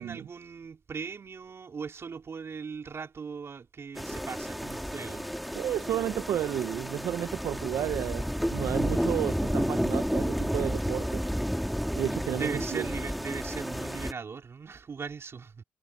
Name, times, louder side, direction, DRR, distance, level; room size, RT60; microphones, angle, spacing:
voice 1, 0.0-5.3 12.3-15.6, right 5 dB, 50° right, 4.3 m, -39 dB
sound 1, 3.9-14.1, equal, ahead, 2.4 m, -31 dB
voice 2, 5.5-11.2 11.9-12.9, right 11 dB, 75° right, 0.9 m, -32 dB
supercardioid pair, 55°, 6 cm